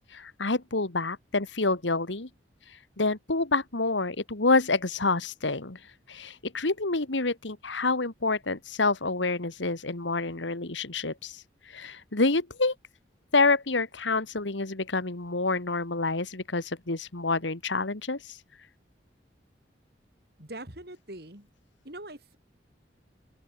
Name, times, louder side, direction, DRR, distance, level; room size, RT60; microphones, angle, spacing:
voice 1, 0.1-2.3 3.0-5.8 6.1-12.7 13.3-18.4, left 3 dB, 85° left, 2.0 m, -28 dB
voice 2, 20.4-21.5 21.8-22.4, right 1 dB, 60° right, 5.0 m, -42 dB
head